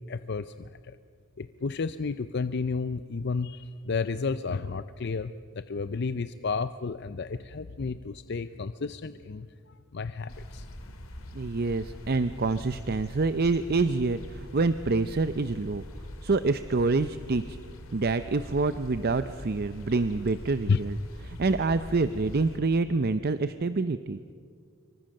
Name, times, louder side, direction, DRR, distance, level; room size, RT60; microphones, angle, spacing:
voice 1, 0.1-1.0 1.4-10.7 20.7-20.8, left 4 dB, 55° left, 12 dB, 0.5 m, -32 dB
sound 1, 10.3-22.6, left 1 dB, 75° left, 2.7 m, -43 dB
voice 2, 11.3-15.8 16.2-17.6 17.9-21.0 21.3-24.2, right 3 dB, 45° right, 12 dB, 0.6 m, -27 dB
27.0 x 24.5 x 6.5 m, 2.1 s
head